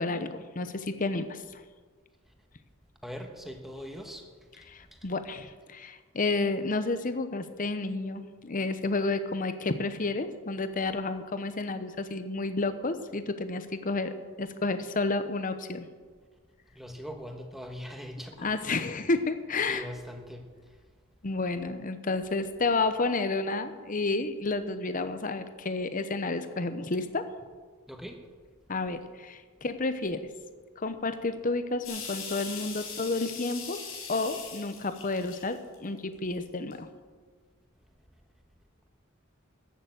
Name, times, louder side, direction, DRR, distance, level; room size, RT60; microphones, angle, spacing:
voice 1, 0.0-1.6 4.7-15.9 18.4-19.8 21.2-27.2 28.7-30.2 30.8-33.8 34.1-36.9, left 3 dB, 40° left, 10 dB, 0.8 m, -31 dB
voice 2, 3.0-4.3 4.5-5.1 16.7-18.7 19.7-20.8 27.9-28.2, equal, ahead, 4 dB, 1.3 m, -42 dB
sound 1, 31.8-36.0 36.4-36.7, left 5 dB, 85° left, 4.9 m, -40 dB
14.0 x 7.0 x 7.9 m, 1.5 s
head